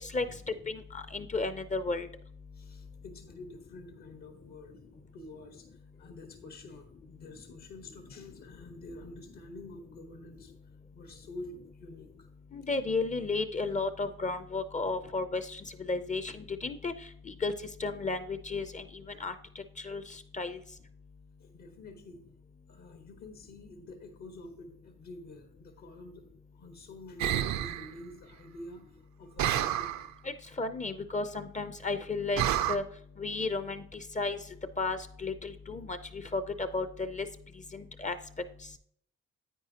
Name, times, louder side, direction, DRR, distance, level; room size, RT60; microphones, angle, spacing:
voice 1, 0.0-2.1 12.5-16.9 17.2-17.5 17.8-20.6 30.2-32.8 33.2-34.4 34.8-37.3 37.7-38.2, left 3 dB, 25° left, 12 dB, 0.6 m, -34 dB
voice 2, 2.5-5.7 6.0-10.5 10.9-12.3 21.4-22.2 22.7-26.2 26.5-28.8 29.2-30.0, left 2 dB, 70° left, 5 dB, 1.5 m, -48 dB
sound 1, 27.2-27.9 29.4-30.1 32.4-32.8, right 11 dB, 65° right, 0.6 m, -29 dB
9.9 x 8.4 x 2.9 m, 0.65 s
cardioid pair, 90°, 30 cm